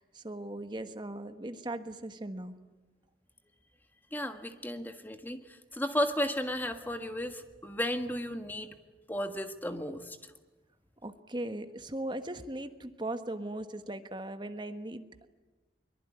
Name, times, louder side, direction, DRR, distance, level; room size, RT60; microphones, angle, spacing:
voice 1, 0.0-2.6 11.0-15.3, right 1 dB, 25° right, 9 dB, 1.3 m, -39 dB
voice 2, 4.1-5.4 5.7-8.7 9.1-10.2, equal, 10° left, 7 dB, 1.5 m, -34 dB
23.0 x 22.5 x 9.9 m, 1.2 s
head